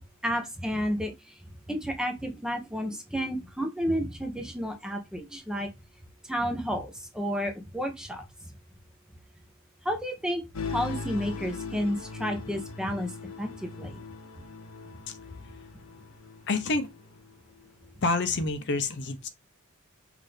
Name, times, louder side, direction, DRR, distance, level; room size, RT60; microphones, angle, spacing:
voice 1, 0.2-1.1 1.7-5.7 6.3-8.2 9.8-10.4 10.7-13.1 13.4-14.0, equal, 5° right, 0.9 m, -31 dB
sound 1, 10.5-17.3, left 4 dB, 80° left, 0.9 m, -40 dB
voice 2, 16.5-16.9 18.0-19.3, left 3 dB, 55° left, 0.7 m, -27 dB
5.9 x 2.7 x 3.3 m
head